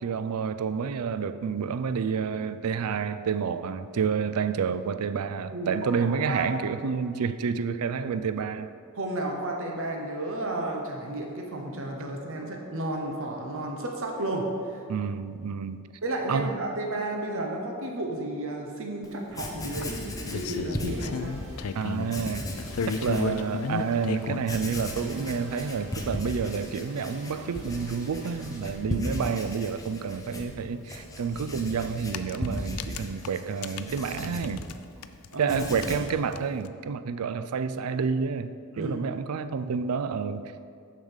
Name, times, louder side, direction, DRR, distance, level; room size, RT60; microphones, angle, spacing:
voice 1, 0.0-8.7 14.9-15.8 16.3-16.6 21.7-22.4 22.9-34.7 35.4-40.7, right 6 dB, 85° right, 12 dB, 0.4 m, -29 dB
voice 2, 5.5-6.5 8.9-14.8 16.0-21.4 35.3-35.6 38.8-39.0, right 1 dB, 65° right, 1 dB, 1.0 m, -32 dB
Writing, 19.0-19.1 19.3-21.5 22.0-23.3 23.8-23.9 24.4-35.0 35.3-36.2, left 1 dB, 15° left, 0.9 m, -37 dB
sound 1, 19.8-22.2 22.6-24.5 25.4-25.5 25.9-26.0 26.3-26.4 26.6-26.7 28.7-28.8 29.0-29.1 31.1-31.2 31.9-34.8 35.0-36.7, left 5 dB, 75° left, 0.4 m, -34 dB
sound 2, 20.9-34.7, right 1 dB, 30° right, 1.8 m, -48 dB
7.2 x 5.0 x 7.2 m, 2.3 s
head